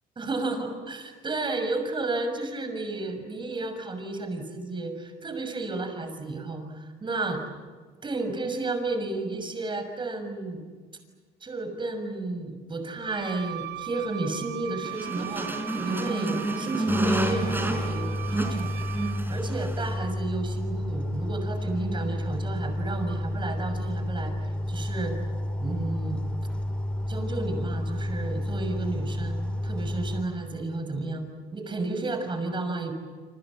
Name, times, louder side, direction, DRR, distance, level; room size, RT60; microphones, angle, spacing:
voice 1, 0.2-7.4 8.0-10.6 11.4-15.5 15.8-18.8 19.3-25.1 25.6-26.2 27.1-29.4 29.6-31.2 31.5-32.9, right 2 dB, 30° right, 6 dB, 6.4 m, -32 dB
Wind instrument woodwind instrument, 13.0-19.3, right 13 dB, 75° right, 0.8 m, -39 dB
sound 1, 14.9-20.0, right 1 dB, 10° right, 4.5 m, -30 dB
sound 2, 16.9-30.2, left 1 dB, 5° left, 5.8 m, -31 dB
27.5 x 27.0 x 7.6 m, 1.5 s
cardioid pair, 110°, 17 cm